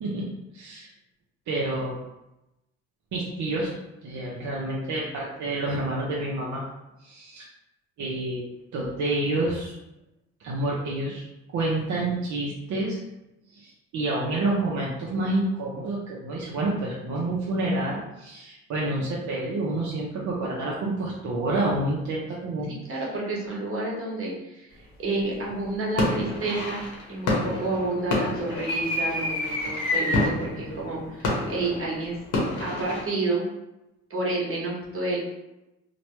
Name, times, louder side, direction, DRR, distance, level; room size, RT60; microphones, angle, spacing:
voice 1, 0.0-0.9 1.5-1.9 3.1-3.7 4.0-6.6 7.0-7.5 8.0-8.5 8.7-9.8 10.4-13.0 13.5-22.7, right 2 dB, 70° right, -5 dB, 0.7 m, -28 dB
voice 2, 22.7-26.8 27.1-32.2 32.6-33.4 34.1-35.2, right 2 dB, 45° right, -4 dB, 1.1 m, -30 dB
sound 1, 25.2-25.6 26.0-33.0, left 2 dB, 85° left, 0.9 m, -28 dB
2.9 x 2.2 x 3.0 m, 0.93 s
cardioid pair, 90°, 30 cm